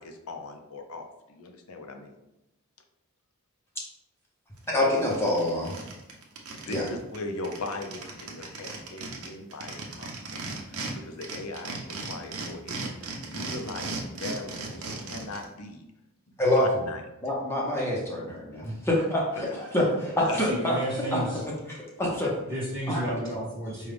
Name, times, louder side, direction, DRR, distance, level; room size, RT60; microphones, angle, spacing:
voice 1, 0.0-2.1 6.5-10.4 10.7-15.9 16.3-17.0 19.3-19.4 20.2-20.4, left 2 dB, 75° left, 4 dB, 0.6 m, -39 dB
sound 1, 4.6-4.7 5.0-6.9 7.1-7.2 7.4-10.9 11.2-15.4, right 3 dB, 75° right, 0.8 m, -36 dB
voice 2, 4.7-5.8 6.7-6.9 16.4-16.7 17.2-20.7 21.1-21.2 21.7-22.3 22.9-23.0, left 1 dB, 10° left, -4 dB, 0.8 m, -26 dB
voice 3, 20.3-21.4 22.5-23.9, right 1 dB, 10° right, -9 dB, 1.2 m, -32 dB
5.1 x 2.3 x 3.3 m, 0.91 s
head